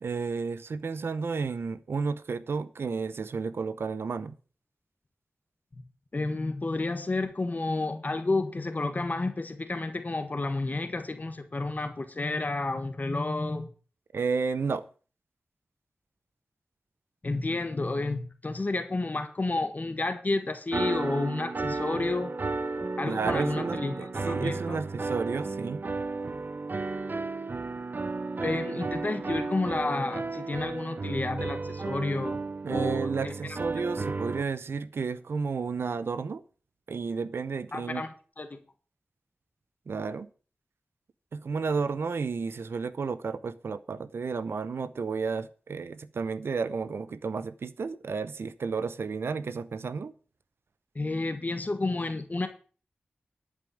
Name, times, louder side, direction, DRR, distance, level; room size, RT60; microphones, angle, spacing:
voice 1, 0.0-4.3 14.1-14.9 23.0-25.8 32.6-36.4 36.9-38.0 39.9-40.3 41.3-50.1, right 5 dB, 90° right, 0.8 m, -32 dB
voice 2, 6.1-13.7 17.2-22.3 23.0-24.8 28.4-32.4 32.7-33.6 37.7-38.1 38.4-38.6 50.9-52.5, left 2 dB, 45° left, 1.4 m, -31 dB
sound 1, 20.7-34.4, right 3 dB, 50° right, 0.8 m, -33 dB
11.5 x 5.3 x 8.4 m
wide cardioid pair, 60°, 4 cm